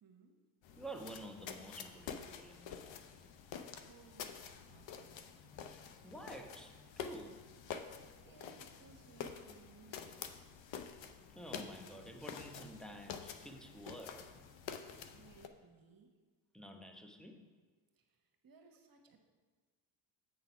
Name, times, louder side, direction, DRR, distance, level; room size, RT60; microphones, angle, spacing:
voice 1, 0.0-0.3 2.5-2.6 3.8-5.4 7.7-10.3 15.1-16.1 17.9-19.2, right 5 dB, 45° right, 4 dB, 1.3 m, -63 dB
sound 1, 0.6-15.5, left 7 dB, 70° left, 0.7 m, -48 dB
voice 2, 0.8-3.1 6.0-7.4 11.4-14.4 16.5-17.5, right 1 dB, ahead, 4 dB, 0.9 m, -50 dB
8.0 x 3.9 x 5.8 m, 1.4 s
supercardioid pair, 70°, 47 cm